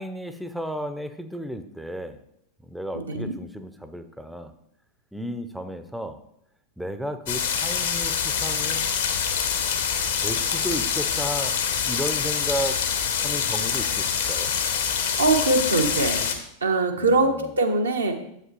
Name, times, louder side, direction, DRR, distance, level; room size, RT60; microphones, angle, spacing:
voice 1, 0.0-2.2 2.6-4.5 5.1-6.2 6.8-8.9 10.2-11.6 11.8-12.8 13.2-14.5 17.0-17.5, equal, ahead, 9 dB, 0.5 m, -33 dB
voice 2, 2.9-3.3 15.2-16.2 16.6-18.2, right 2 dB, 75° right, 3 dB, 0.9 m, -22 dB
sound 1, 7.3-16.3, left 7 dB, 60° left, 1.0 m, -25 dB
7.8 x 7.6 x 3.0 m, 0.75 s
figure-of-eight pair, 90°, 0 cm